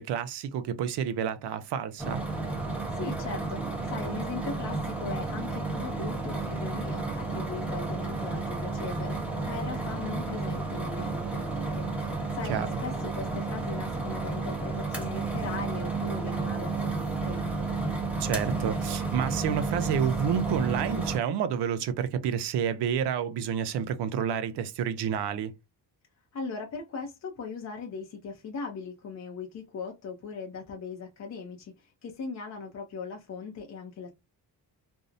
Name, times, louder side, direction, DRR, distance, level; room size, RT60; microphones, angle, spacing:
voice 1, 0.0-2.2 12.5-12.7 18.2-25.5, right 8 dB, 75° right, 0.6 m, -29 dB
sound 1, 2.0-21.2, right 3 dB, 5° right, 0.8 m, -32 dB
voice 2, 2.9-3.6 3.9-17.7 26.3-34.1, left 5 dB, 45° left, 0.5 m, -39 dB
2.6 x 2.0 x 2.5 m
cardioid pair, 120°, 40 cm